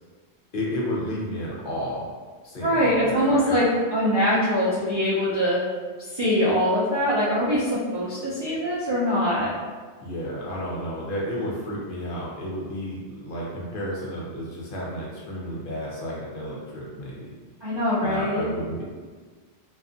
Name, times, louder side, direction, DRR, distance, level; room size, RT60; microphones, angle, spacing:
voice 1, 0.5-2.0 2.4-3.6 10.0-17.3 18.0-18.8, equal, 55° left, -5 dB, 0.7 m, -32 dB
voice 2, 2.6-3.7 3.9-5.6 6.1-9.5 17.6-18.4, equal, 45° right, -9 dB, 0.3 m, -23 dB
2.5 x 2.3 x 2.4 m, 1.5 s
omnidirectional pair, 1.1 m